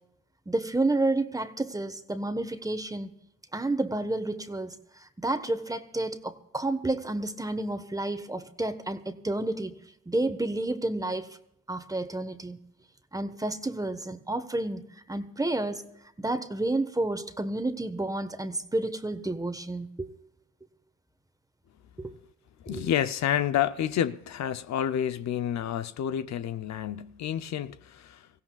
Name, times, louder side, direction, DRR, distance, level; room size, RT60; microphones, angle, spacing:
voice 1, 0.5-3.1 3.5-4.8 5.2-9.7 10.1-11.3 11.7-12.6 13.1-15.8 16.2-20.1 22.0-22.1 22.7-22.8, right 2 dB, 10° right, 1.2 m, -30 dB
voice 2, 22.6-28.3, left 10 dB, 65° left, 0.7 m, -29 dB
25.5 x 16.5 x 2.4 m
cardioid pair, 90°, 30 cm